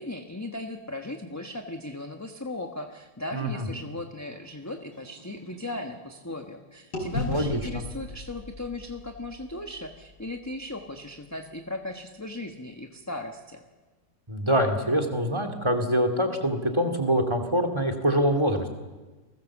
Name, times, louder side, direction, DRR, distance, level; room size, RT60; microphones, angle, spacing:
voice 1, 0.0-13.6, left 2 dB, 10° left, 4 dB, 1.1 m, -37 dB
voice 2, 3.3-3.7 7.3-7.8 14.3-18.7, equal, 15° right, 4 dB, 2.5 m, -25 dB
sound 1, 4.2-6.6 6.9-10.9, left 1 dB, 80° left, 6.5 m, -38 dB
30.0 x 19.5 x 7.4 m, 1.2 s
omnidirectional pair, 2.0 m